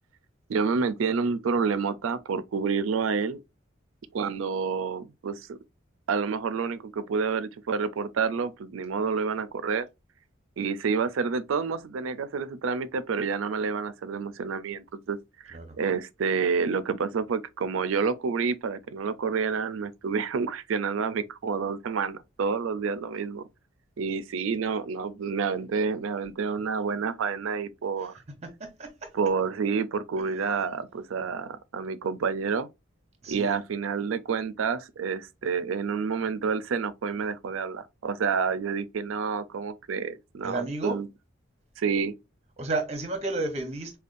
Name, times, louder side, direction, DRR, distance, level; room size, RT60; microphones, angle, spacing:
voice 1, 0.5-3.4 4.1-5.6 6.1-9.9 10.6-15.2 15.4-23.4 24.0-28.1 29.1-32.7 33.3-41.1 41.8-42.1, right 5 dB, 80° right, 0.4 m, -29 dB
voice 2, 28.4-29.1 33.2-33.6 40.4-41.0 42.6-44.0, right 2 dB, 30° right, 0.9 m, -32 dB
5.1 x 2.3 x 2.5 m
head